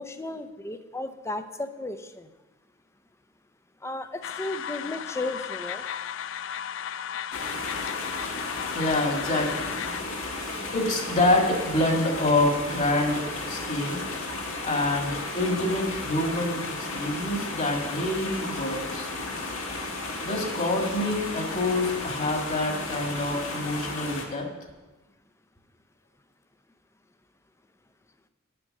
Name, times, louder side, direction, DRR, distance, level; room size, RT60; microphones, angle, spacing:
voice 1, 0.0-2.3 3.8-5.8, left 2 dB, 15° left, 10 dB, 0.6 m, -34 dB
sound 1, 4.2-10.0, left 9 dB, 65° left, 0.4 m, -35 dB
sound 2, 7.3-24.3, left 2 dB, 90° left, 1.7 m, -34 dB
voice 2, 8.7-9.7 10.7-14.0 14.6-19.1 20.2-24.5, left 2 dB, 40° left, 2 dB, 1.9 m, -26 dB
9.6 x 7.7 x 6.5 m, 1.1 s
head